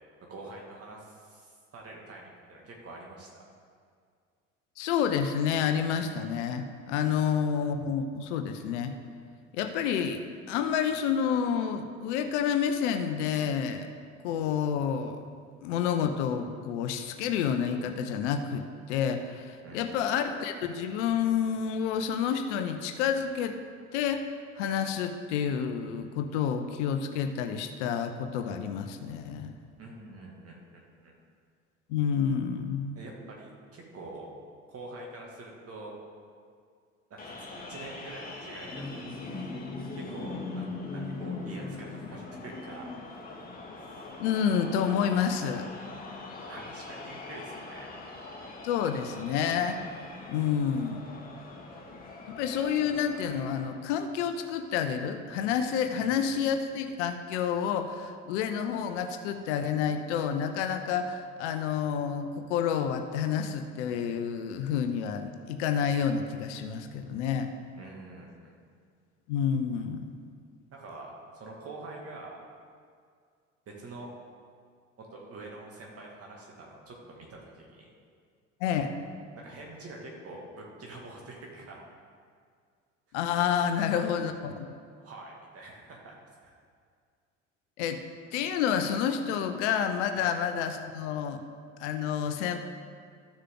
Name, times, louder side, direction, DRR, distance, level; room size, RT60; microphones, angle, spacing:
voice 1, 0.3-3.4 19.6-19.9 29.8-31.1 33.0-34.3 34.7-35.9 37.1-39.1 40.0-42.9 46.5-47.9 51.2-51.5 56.0-56.6 67.8-68.5 70.7-72.4 73.7-74.1 75.0-77.9 79.3-81.8 83.8-84.1 85.0-86.1 86.4-86.5 90.1-90.3, right 2 dB, 40° right, -1 dB, 2.3 m, -45 dB
voice 2, 4.8-8.9 9.5-10.2 10.5-13.9 14.2-15.2 15.6-23.6 23.9-24.2 24.6-29.5 31.9-32.9 44.2-45.7 48.6-49.8 50.3-51.0 52.3-67.5 69.3-70.1 78.6-78.9 83.1-84.5 87.8-88.0 88.3-91.4 91.8-92.6, left 8 dB, 65° left, 7 dB, 0.8 m, -29 dB
sound 1, 37.2-53.7, left 3 dB, 25° left, 2.0 m, -41 dB
14.0 x 6.6 x 3.8 m, 2.1 s
figure-of-eight pair, 65°, 37 cm